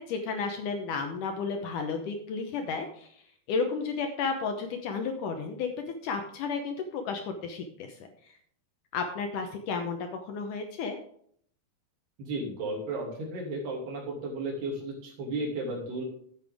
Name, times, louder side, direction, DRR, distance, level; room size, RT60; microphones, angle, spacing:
voice 1, 0.0-3.2 3.5-8.0 8.2-8.3 8.9-11.0, left 5 dB, 70° left, 5 dB, 2.0 m, -32 dB
voice 2, 12.2-16.0, right 2 dB, 85° right, -1 dB, 4.6 m, -34 dB
11.5 x 8.8 x 3.5 m, 0.63 s
omnidirectional pair, 4.5 m